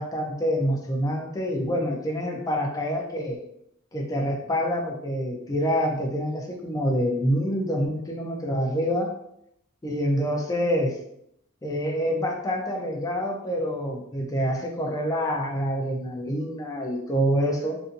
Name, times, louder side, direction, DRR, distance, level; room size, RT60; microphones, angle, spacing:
voice 1, 0.0-3.4 3.9-9.1 9.8-11.0 11.6-17.8, equal, 15° left, 1 dB, 0.4 m, -26 dB
2.6 x 2.5 x 2.5 m, 0.75 s
head